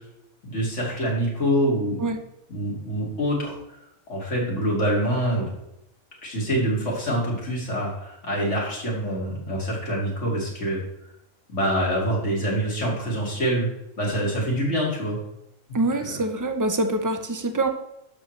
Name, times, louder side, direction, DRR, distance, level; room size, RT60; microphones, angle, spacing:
voice 1, 0.4-2.0 2.5-3.6 4.1-5.5 6.2-10.8 11.5-13.7 14.0-15.2, equal, 65° left, -3 dB, 2.6 m, -25 dB
voice 2, 15.7-17.7, right 2 dB, 25° right, 7 dB, 0.4 m, -25 dB
11.5 x 6.2 x 3.2 m, 0.85 s
omnidirectional pair, 1.3 m